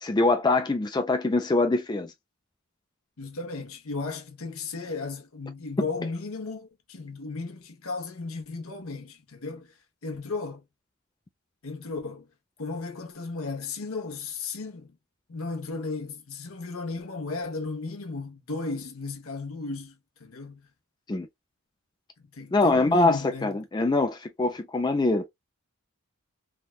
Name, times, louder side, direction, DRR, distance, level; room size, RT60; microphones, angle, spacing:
voice 1, 0.0-2.1 21.1-21.3 22.5-25.3, left 2 dB, 20° left, 0.4 m, -24 dB
voice 2, 3.2-9.7 10.0-10.6 11.6-12.3 12.6-14.9 15.3-20.7 22.3-23.5, left 3 dB, 85° left, 0.9 m, -35 dB
3.5 x 2.2 x 2.3 m
head